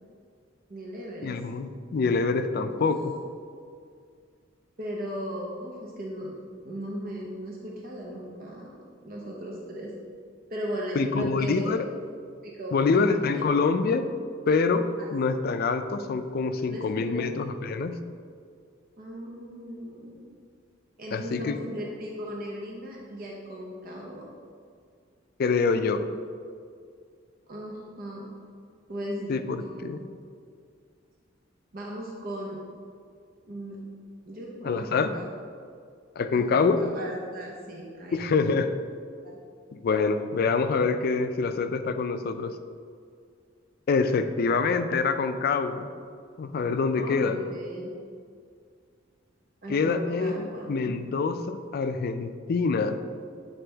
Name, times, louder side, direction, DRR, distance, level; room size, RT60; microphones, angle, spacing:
voice 1, 0.7-1.4 2.7-2.8 4.8-6.3 6.6-9.9 10.5-11.8 12.4-13.4 15.0-15.4 16.7-17.5 19.0-20.4 21.0-24.2 27.5-28.3 28.9-29.9 31.7-32.6 33.4-33.8 34.3-35.3 36.3-38.3 39.2-39.4 47.0-47.9 49.6-51.0, equal, 50° right, -2 dB, 0.7 m, -37 dB
voice 2, 1.2-3.1 11.0-11.8 12.7-14.1 14.5-17.9 21.1-21.6 25.4-26.0 29.3-30.0 34.6-35.1 36.2-36.8 38.1-38.7 39.7-42.5 43.9-45.9 46.4-47.4 49.7-53.0, left 4 dB, 50° left, 9 dB, 0.4 m, -25 dB
7.9 x 4.1 x 3.4 m, 2.2 s
head